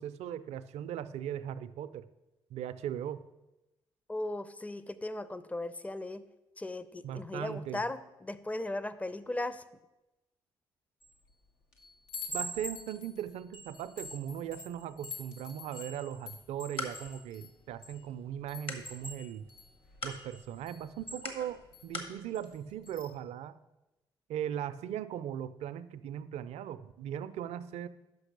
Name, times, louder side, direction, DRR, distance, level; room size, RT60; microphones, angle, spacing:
voice 1, 0.0-2.1 2.5-3.2 7.0-7.8 12.3-19.5 20.0-23.6 24.3-27.9, right 10 dB, 70° right, 14 dB, 0.4 m, -39 dB
voice 2, 4.1-6.3 6.6-9.6, left 2 dB, 10° left, 14 dB, 0.5 m, -37 dB
Chime, 11.0-11.3 11.7-18.0 18.5-21.9 22.3-22.6 22.8-23.2, left 1 dB, 90° left, 0.9 m, -45 dB
sound 1, 16.3-22.2, left 3 dB, 50° left, 1.3 m, -45 dB
5.8 x 5.3 x 6.6 m, 0.98 s
hypercardioid pair, 50°, 12 cm